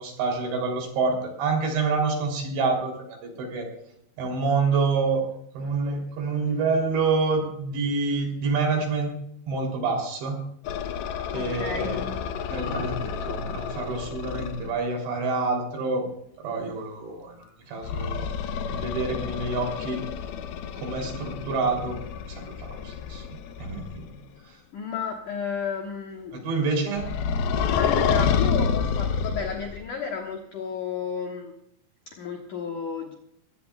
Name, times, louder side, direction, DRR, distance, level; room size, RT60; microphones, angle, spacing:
voice 1, 0.0-2.9 3.2-3.7 4.2-5.3 5.5-9.1 9.5-10.4 11.3-12.1 12.5-16.1 16.4-18.3 18.7-20.1 20.8-22.0 22.3-23.2 23.6-24.1 26.4-27.1, right 4 dB, 65° right, 2 dB, 5.4 m, -27 dB
sound 1, 10.6-14.7 17.8-24.1 27.0-29.8, left 7 dB, 85° left, 2.1 m, -29 dB
voice 2, 11.3-12.0 24.7-26.5 27.5-31.5 32.2-33.1, left 6 dB, 70° left, 1 dB, 2.0 m, -32 dB
24.0 x 16.5 x 2.3 m, 0.72 s
omnidirectional pair, 5.6 m